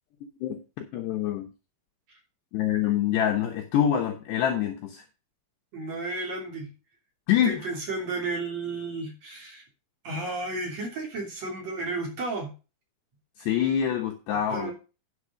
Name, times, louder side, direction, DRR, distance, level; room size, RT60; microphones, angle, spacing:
voice 1, 0.4-1.5 2.5-5.0 7.3-7.6 13.4-14.7, left 10 dB, 70° left, 2 dB, 2.8 m, -26 dB
voice 2, 5.7-6.7 7.4-9.6 10.0-12.5 14.5-14.7, right 2 dB, 35° right, 0 dB, 3.7 m, -33 dB
10.5 x 6.6 x 5.0 m, 0.32 s
omnidirectional pair, 5.9 m